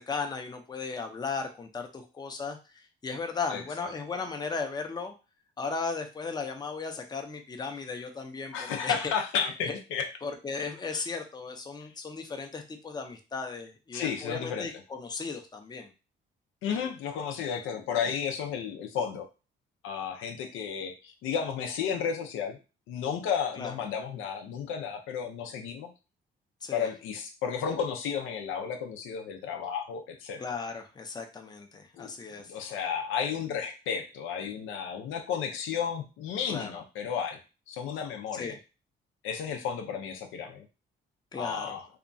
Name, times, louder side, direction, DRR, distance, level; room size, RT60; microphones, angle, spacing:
voice 1, 0.0-5.1 5.6-9.1 9.6-9.8 10.2-15.9 23.6-23.7 26.6-26.9 30.4-32.5 36.5-36.8 38.3-38.6 41.3-41.8, left 4 dB, 20° left, 4 dB, 0.5 m, -36 dB
voice 2, 8.5-10.1 10.9-11.0 13.9-14.7 16.6-19.3 19.8-22.6 22.9-25.9 26.7-30.4 32.0-37.4 37.7-38.5 39.2-40.7 41.4-41.8, left 7 dB, 90° left, 4 dB, 0.5 m, -33 dB
2.8 x 2.3 x 2.5 m, 0.31 s
cardioid pair, 90°, 20 cm